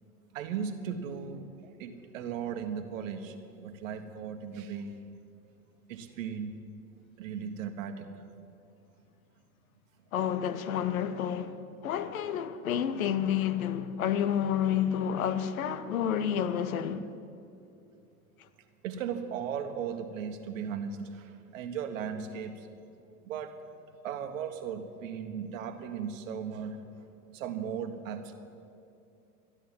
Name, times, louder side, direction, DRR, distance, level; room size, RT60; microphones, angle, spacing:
voice 1, 0.3-3.4 3.6-4.9 5.9-6.6 7.2-8.1 18.8-22.7 23.2-23.6 24.0-27.0 27.3-28.3, right 7 dB, 60° right, 1.4 m, -37 dB
voice 2, 10.1-17.1, left 9 dB, 65° left, 0.9 m, -30 dB
13.0 x 10.5 x 7.6 m
figure-of-eight pair, 90°, 44 cm